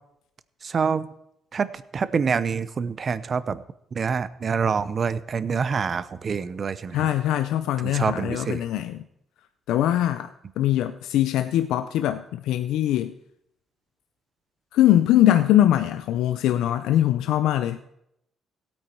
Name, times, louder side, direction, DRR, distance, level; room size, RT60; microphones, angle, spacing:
voice 1, 0.6-1.1 1.5-3.6 3.9-7.1 7.8-8.6, right 5 dB, 45° right, 15 dB, 0.7 m, -26 dB
voice 2, 6.9-9.0 9.7-10.3 10.6-13.1 14.7-17.8, left 12 dB, 90° left, 10 dB, 0.4 m, -22 dB
16.0 x 8.9 x 4.5 m, 0.79 s
cardioid pair, 90°, 0 cm